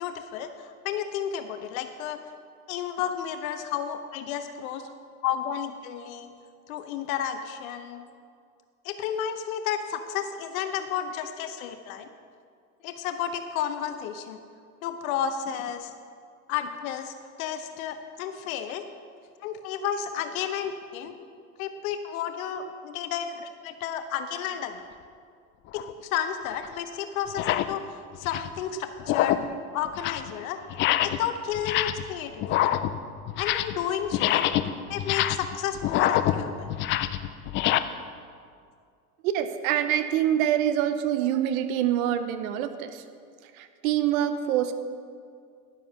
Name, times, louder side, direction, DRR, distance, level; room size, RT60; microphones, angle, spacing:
voice 1, 0.0-2.2 2.7-4.9 5.2-6.3 6.7-8.0 8.8-12.1 12.8-14.4 14.8-15.9 16.5-18.8 19.4-21.1 21.6-24.8 25.7-29.4 29.7-30.6 31.0-32.8 33.4-34.5 34.9-36.7, left 9 dB, 65° left, 8 dB, 0.9 m, -32 dB
sound 1, 25.7-25.9 26.6-26.7 27.3-27.7 28.1-28.6 29.0-29.5 29.9-30.3 30.7-31.3 31.5-32.1 32.4-33.8 34.1-37.8, left 13 dB, 30° left, 0.3 m, -26 dB
voice 2, 39.2-43.0 43.4-44.7, right 11 dB, 65° right, 10 dB, 0.9 m, -26 dB
11.0 x 7.5 x 5.5 m, 2.2 s
hypercardioid pair, 95°, 45 cm